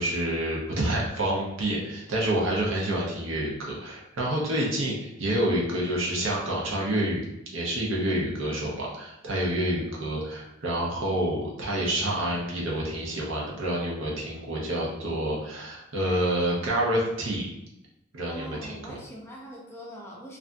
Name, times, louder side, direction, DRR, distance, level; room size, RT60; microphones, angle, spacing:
voice 1, 0.0-7.2 7.5-17.5 18.1-19.0, right 1 dB, 75° right, -3 dB, 0.7 m, -28 dB
voice 2, 18.3-20.4, equal, 15° left, -4 dB, 0.5 m, -42 dB
2.5 x 2.5 x 2.2 m, 0.85 s
head